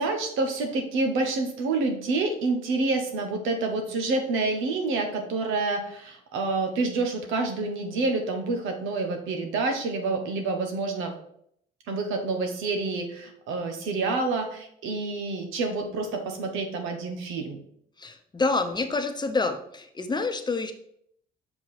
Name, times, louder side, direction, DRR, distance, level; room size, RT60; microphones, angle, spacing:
voice 1, 0.0-11.1 11.9-17.6, right 3 dB, 80° right, 4 dB, 1.2 m, -28 dB
voice 2, 18.0-20.7, left 3 dB, 20° left, 6 dB, 0.9 m, -27 dB
6.0 x 4.6 x 4.3 m, 0.69 s
cardioid pair, 85°, 20 cm